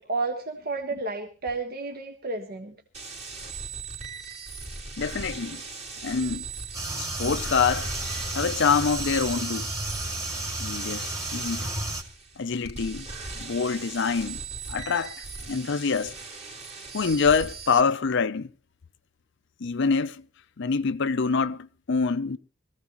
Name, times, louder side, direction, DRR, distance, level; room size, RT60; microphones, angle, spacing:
voice 1, 0.0-2.7, right 3 dB, 50° right, 1.5 m, -31 dB
sound 1, 2.9-17.8, right 4 dB, 35° right, 3.3 m, -39 dB
voice 2, 5.0-5.6 6.0-6.4 7.0-7.9 8.3-9.7 10.6-11.7 12.4-13.1 13.3-14.4 14.7-15.2 15.5-16.1 16.9-18.5 19.6-20.2 20.6-22.4, left 5 dB, 65° left, 0.6 m, -25 dB
sound 2, 6.7-12.0, right 2 dB, 20° right, 2.3 m, -32 dB
22.0 x 15.0 x 3.1 m
head